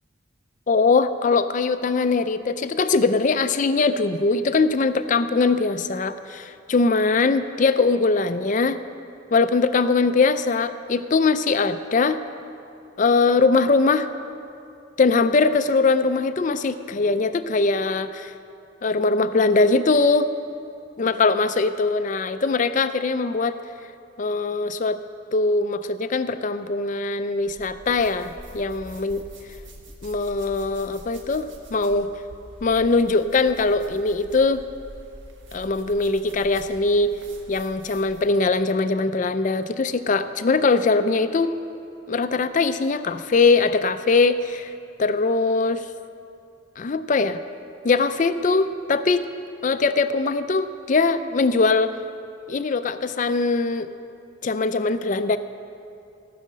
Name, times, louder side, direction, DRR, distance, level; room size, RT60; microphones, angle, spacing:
voice 1, 0.7-8.8 9.3-12.2 13.0-14.1 15.0-18.3 18.8-20.3 21.0-23.5 24.2-25.0 25.3-29.2 30.0-32.1 32.6-34.6 35.5-37.1 37.5-41.5 42.1-44.7 45.0-45.8 46.8-47.4 47.8-49.3 49.6-52.0 52.5-53.9 54.4-55.4, left 3 dB, 40° left, 11 dB, 0.4 m, -21 dB
sound 1, 27.4-38.4, equal, 65° right, 1.5 m, -45 dB
15.0 x 6.4 x 7.4 m, 2.6 s
head